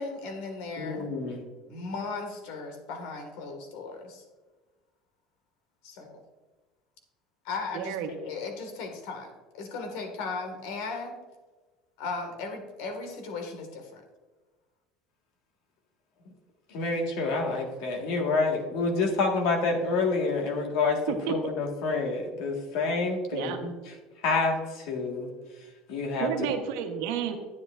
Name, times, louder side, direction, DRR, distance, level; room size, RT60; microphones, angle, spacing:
voice 1, 0.0-1.1 1.7-4.2 5.8-6.2 7.4-9.3 9.5-11.2 12.0-14.0, left 4 dB, 85° left, 4 dB, 1.8 m, -37 dB
voice 2, 0.8-1.4 16.7-21.0 21.3-23.7 24.2-25.3 25.9-26.3, left 3 dB, 65° left, 2 dB, 1.7 m, -28 dB
voice 3, 7.7-8.1 21.1-21.3 23.3-23.6 26.2-27.4, right 9 dB, 80° right, 5 dB, 1.1 m, -30 dB
10.5 x 9.4 x 2.5 m, 1.3 s
cardioid pair, 165°, 0 cm